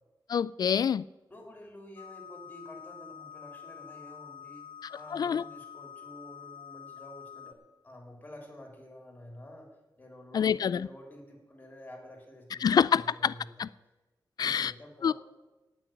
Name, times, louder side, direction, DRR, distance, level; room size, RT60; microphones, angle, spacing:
voice 1, 0.3-1.0 5.1-5.4 10.3-10.9 12.6-13.3 13.6-13.7 14.4-14.7 15.0-15.1, left 7 dB, 60° left, 0.4 m, -26 dB
voice 2, 1.3-7.6 7.8-9.7 10.0-13.6 14.4-15.1, left 1 dB, 20° left, 3.4 m, -49 dB
sound 1, 2.0-7.5, left 8 dB, 80° left, 1.7 m, -47 dB
17.0 x 6.2 x 9.0 m
wide cardioid pair, 170°, 8 cm